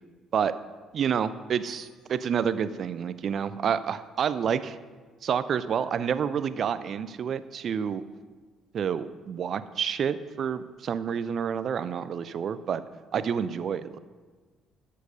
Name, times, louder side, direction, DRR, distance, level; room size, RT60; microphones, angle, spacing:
voice 1, 0.9-4.8 5.2-8.0 8.7-12.8 13.1-14.0, right 7 dB, 50° right, 14 dB, 0.5 m, -29 dB
sound 1, 1.7-3.4, equal, 80° left, 2.9 m, -62 dB
12.5 x 6.7 x 5.2 m, 1.4 s
figure-of-eight pair, 45°, 0 cm